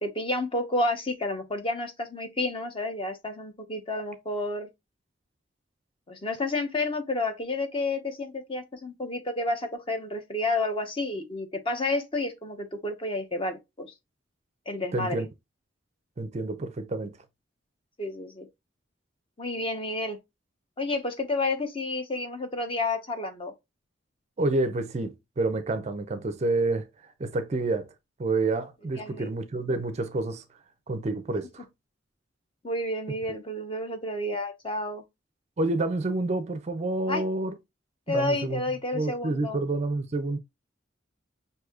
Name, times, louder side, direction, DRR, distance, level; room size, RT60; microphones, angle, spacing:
voice 1, 0.0-4.7 6.1-13.9 14.7-15.2 18.0-18.5 19.4-20.2 20.8-23.5 28.9-29.3 32.6-35.0 37.1-37.2 38.1-39.6, left 2 dB, 30° left, 0.9 m, -30 dB
voice 2, 14.9-15.3 16.2-17.2 24.4-26.9 27.2-27.9 28.2-30.4 30.9-31.6 35.6-37.5 38.1-38.6 38.9-40.4, right 2 dB, 35° right, 0.4 m, -28 dB
6.1 x 2.7 x 2.3 m
head